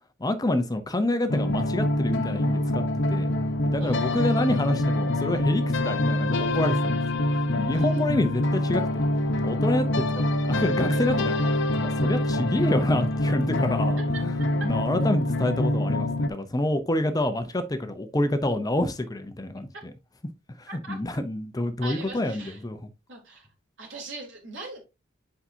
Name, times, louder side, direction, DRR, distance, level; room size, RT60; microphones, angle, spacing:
voice 1, 0.2-2.8 3.1-3.3 3.7-7.0 7.3-9.1 9.4-10.0 10.5-11.5 11.8-14.3 14.6-19.7 20.6-22.8, left 1 dB, 20° left, 0.6 m, -27 dB
sound 1, 1.3-16.3, left 1 dB, 65° left, 0.9 m, -25 dB
voice 2, 3.8-4.4 7.7-8.0 14.1-14.2 20.7-21.0 21.8-22.6 23.1-23.5 23.8-24.8, right 3 dB, 70° right, 3.6 m, -41 dB
8.5 x 5.6 x 2.7 m
head